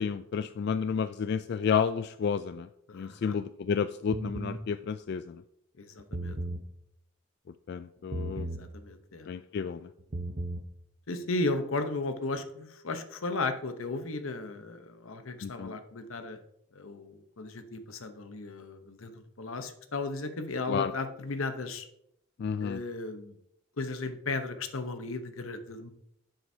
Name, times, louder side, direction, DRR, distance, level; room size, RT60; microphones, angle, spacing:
voice 1, 0.0-2.7 2.9-5.2 7.7-8.5 9.3-9.8 15.4-15.7 20.7-20.9 22.4-22.8, left 6 dB, 55° left, 12 dB, 0.3 m, -31 dB
voice 2, 2.9-3.4 5.8-6.4 8.4-9.3 11.1-16.4 16.7-21.9 22.6-23.4 23.8-25.9, left 3 dB, 85° left, 8 dB, 0.9 m, -35 dB
sound 1, 4.1-4.6 6.0-6.6 8.1-8.7 10.0-10.6, right 1 dB, 40° right, 0.7 m, -35 dB
10.5 x 7.9 x 2.8 m, 0.77 s
head